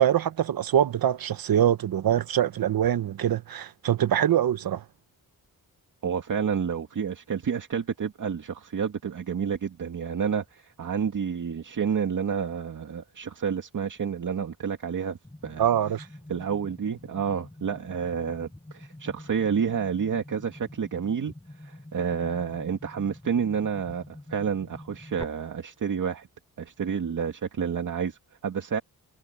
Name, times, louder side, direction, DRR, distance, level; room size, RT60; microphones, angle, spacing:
voice 1, 0.0-4.8 15.6-16.1, right 10 dB, 75° right, 1.0 m, -24 dB
voice 2, 6.0-15.2 15.4-15.7 16.3-21.3 21.6-26.3 26.6-28.8, right 7 dB, 60° right, 2.3 m, -29 dB
sound 1, 15.2-25.2, left 1 dB, 10° left, 2.7 m, -46 dB
wide cardioid pair, 135°, 36 cm